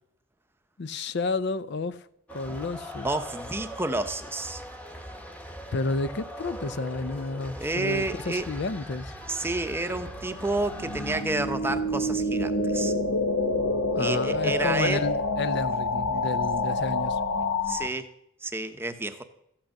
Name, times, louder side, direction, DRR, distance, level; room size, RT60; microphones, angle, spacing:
voice 1, 0.8-2.0 2.3-3.1 5.7-9.1 13.9-17.2, left 3 dB, 50° left, 0.5 m, -31 dB
sound 1, 2.3-11.2, equal, 5° left, 1.0 m, -40 dB
voice 2, 3.0-4.6 7.6-8.5 9.3-12.9 14.0-15.0 17.6-18.1 18.4-19.2, right 2 dB, 10° right, 0.7 m, -30 dB
sound 2, 9.1-17.9, left 2 dB, 65° left, 1.0 m, -28 dB
14.5 x 8.8 x 6.5 m
head